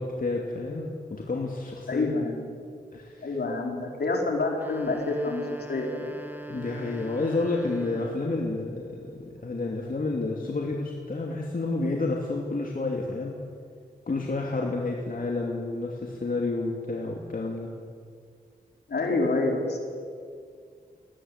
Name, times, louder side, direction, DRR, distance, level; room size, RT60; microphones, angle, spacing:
voice 1, 0.0-2.1 2.9-3.4 6.5-13.4 14.1-17.7, left 3 dB, 55° left, 0 dB, 2.7 m, -30 dB
voice 2, 1.9-2.6 3.2-6.1 18.9-19.8, left 3 dB, 75° left, 1 dB, 4.4 m, -28 dB
sound 1, 4.5-8.5, right 2 dB, 10° right, 1.9 m, -41 dB
22.0 x 18.0 x 8.2 m, 2.2 s
cardioid pair, 55°, 17 cm